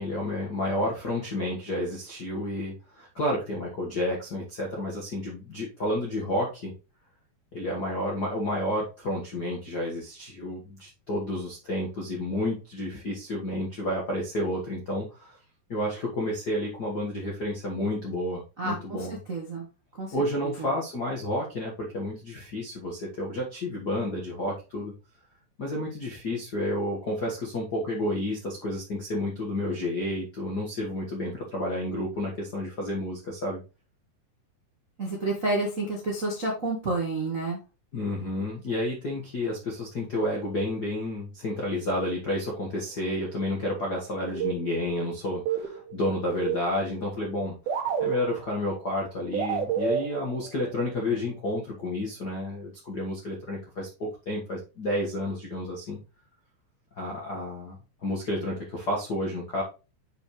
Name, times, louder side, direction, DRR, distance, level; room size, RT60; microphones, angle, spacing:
voice 1, 0.0-6.7 7.5-15.4 15.7-19.2 20.1-24.9 25.6-33.6 37.9-47.5 48.0-56.0 56.9-57.8 58.0-59.6, left 1 dB, 70° left, -2 dB, 0.9 m, -30 dB
voice 2, 18.6-19.7 20.0-20.1 20.4-20.7 35.0-37.6, right 2 dB, 90° right, -1 dB, 0.7 m, -30 dB
sound 1, 44.3-45.0 45.3-47.0 47.3-47.4 47.7-48.8 49.3-50.8, right 7 dB, 75° right, 2.9 m, -31 dB
7.6 x 5.3 x 3.1 m, 0.30 s
omnidirectional pair, 4.5 m